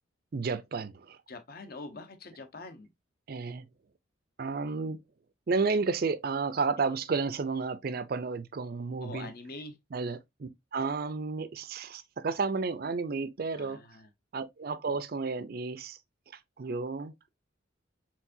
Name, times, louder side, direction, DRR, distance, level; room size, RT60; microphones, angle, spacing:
voice 1, 0.3-1.2 3.3-3.7 4.4-5.0 5.5-9.3 9.9-13.8 14.3-16.0 16.6-17.1, right 4 dB, 50° right, 0.4 m, -32 dB
voice 2, 1.3-2.9 6.8-7.0 9.0-9.8 13.6-14.1, left 3 dB, 50° left, 0.8 m, -44 dB
4.6 x 3.7 x 2.6 m
head